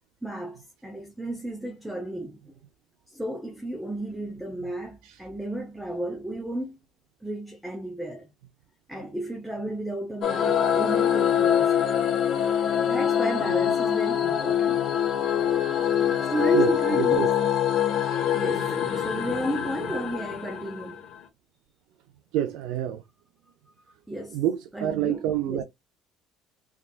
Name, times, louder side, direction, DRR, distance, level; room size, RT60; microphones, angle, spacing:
voice 1, 0.2-2.5 3.1-6.8 7.2-8.3 8.9-11.8 12.8-14.9 16.0-17.2 18.3-21.0 24.1-24.4 24.7-25.6, right 1 dB, 5° right, 0.9 m, -32 dB
sound 1, 10.2-21.1, left 9 dB, 50° left, 1.1 m, -24 dB
voice 2, 16.5-17.3 22.3-23.0 24.3-25.6, right 11 dB, 80° right, 0.5 m, -28 dB
3.6 x 3.5 x 2.4 m
cardioid pair, 120°, 0 cm